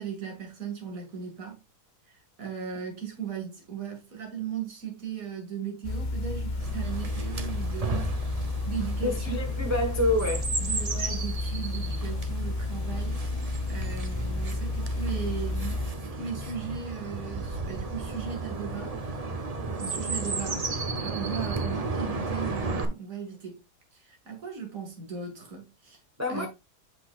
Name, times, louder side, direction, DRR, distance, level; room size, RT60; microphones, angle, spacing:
voice 1, 0.0-1.6 2.4-8.1 8.7-9.4 10.6-13.2 13.7-18.9 19.7-23.6 23.9-26.0 26.3-26.5, right 7 dB, 55° right, 2.5 m, -37 dB
sound 1, 5.8-15.9, left 2 dB, 70° left, 0.4 m, -31 dB
Chirp tweet, 6.6-22.8, right 3 dB, 30° right, 0.7 m, -34 dB
voice 2, 9.0-10.5 26.2-26.5, left 2 dB, 10° right, 1.1 m, -27 dB
8.2 x 6.0 x 2.4 m
omnidirectional pair, 1.7 m